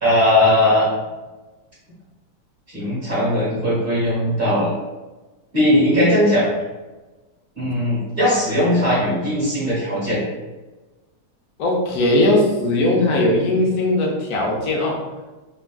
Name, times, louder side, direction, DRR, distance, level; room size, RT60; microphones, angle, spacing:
voice 1, 0.0-0.9 2.7-4.7 5.5-6.5 7.6-10.2, left 1 dB, 45° right, -8 dB, 0.8 m, -18 dB
voice 2, 11.6-15.0, left 1 dB, 65° left, -1 dB, 1.0 m, -19 dB
3.3 x 2.3 x 2.2 m, 1.2 s
omnidirectional pair, 2.0 m